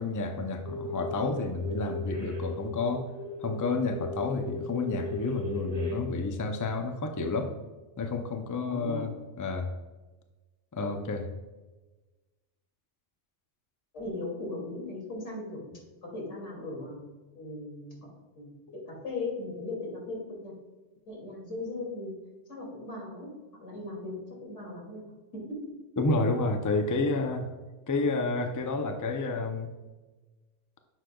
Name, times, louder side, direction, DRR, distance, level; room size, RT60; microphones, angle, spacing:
voice 1, 0.0-3.0 3.4-7.5 8.0-9.7 10.7-11.2 26.0-27.4 27.9-29.7, left 3 dB, 25° left, 5 dB, 0.5 m, -30 dB
sound 1, 0.6-1.3 1.6-6.0, left 1 dB, 25° right, 2.2 m, -37 dB
voice 2, 8.6-9.1 10.8-10.9 13.9-15.6 16.0-17.1 17.3-18.1 18.3-18.5 18.9-20.5 21.1-22.1 22.5-23.3 23.6-25.7, left 2 dB, 90° left, -3 dB, 3.0 m, -38 dB
10.0 x 6.5 x 2.3 m, 1.2 s
omnidirectional pair, 1.2 m